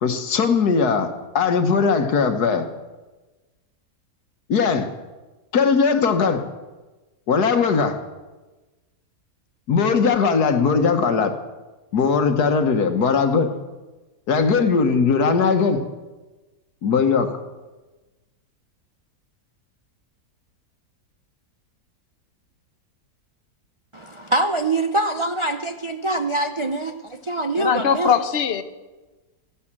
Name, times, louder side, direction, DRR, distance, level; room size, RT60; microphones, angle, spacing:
voice 1, 0.0-2.7 4.5-4.9 5.5-6.4 7.3-8.0 9.7-11.4 11.9-13.5 14.3-15.8 16.8-17.3, left 5 dB, 80° left, 8 dB, 1.8 m, -19 dB
voice 2, 23.9-28.2, right 2 dB, 45° right, 6 dB, 0.3 m, -24 dB
voice 3, 27.6-28.6, left 8 dB, 50° left, 12 dB, 1.0 m, -20 dB
14.5 x 11.5 x 7.4 m, 1.2 s
omnidirectional pair, 1.7 m